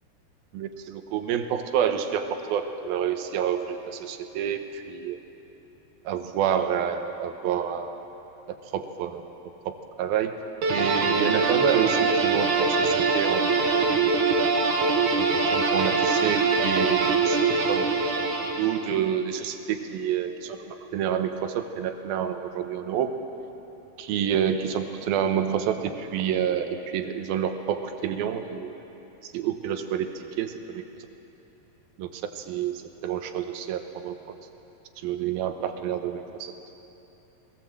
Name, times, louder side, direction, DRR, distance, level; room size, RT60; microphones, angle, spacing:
voice 1, 0.5-5.2 6.1-8.0 8.7-9.2 9.7-10.3 10.7-13.8 15.1-17.4 17.7-17.8 18.1-18.3 18.6-23.1 24.0-28.7 29.2-30.8 32.0-34.2 35.0-36.5, right 9 dB, 75° right, 7 dB, 2.7 m, -28 dB
sound 1, 10.6-19.0, right 4 dB, 60° right, 2.6 m, -23 dB
20.0 x 17.0 x 7.6 m, 3.0 s
omnidirectional pair, 4.5 m